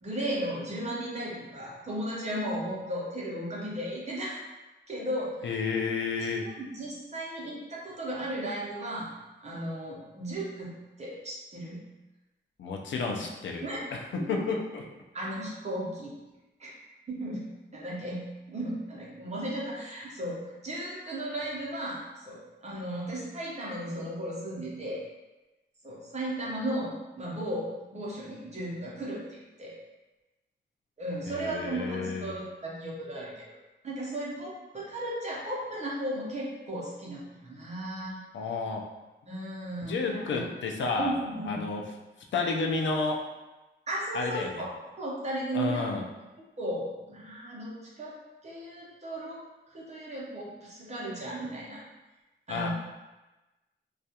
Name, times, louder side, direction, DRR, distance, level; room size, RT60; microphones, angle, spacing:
voice 1, 0.0-4.4 4.9-5.6 6.2-9.1 9.4-11.8 13.0-13.2 13.6-13.9 14.2-14.4 15.1-16.1 16.6-16.7 17.1-25.0 25.8-29.7 31.0-33.5 33.8-38.2 39.3-40.5 41.0-41.6 43.9-44.7 45.0-45.9 46.6-48.1 48.4-49.4 49.7-51.8 52.5-52.7, right 1 dB, 35° right, -5 dB, 0.7 m, -35 dB
voice 2, 5.4-6.5 12.6-13.6 13.9-14.8 31.3-32.3 38.3-38.8 39.8-41.2 41.5-41.8 42.3-43.3 44.1-44.7 45.5-46.0 52.5-52.7, left 4 dB, 70° left, 1 dB, 0.4 m, -31 dB
2.3 x 2.2 x 2.8 m, 1.1 s
wide cardioid pair, 120°, 20 cm